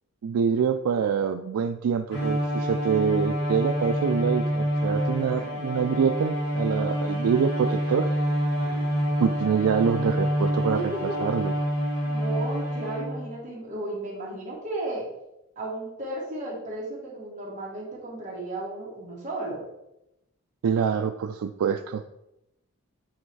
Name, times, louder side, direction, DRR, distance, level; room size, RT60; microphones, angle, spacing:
voice 1, 0.2-8.1 9.2-10.9 11.2-11.5 20.6-22.0, right 7 dB, 85° right, 7 dB, 0.3 m, -25 dB
Bowed string instrument, 2.1-13.3, equal, 50° left, 1.9 m, -27 dB
voice 2, 10.7-11.2 12.1-15.1 15.6-19.6, right 2 dB, 35° right, -4 dB, 1.9 m, -34 dB
7.8 x 3.3 x 4.7 m, 0.88 s
head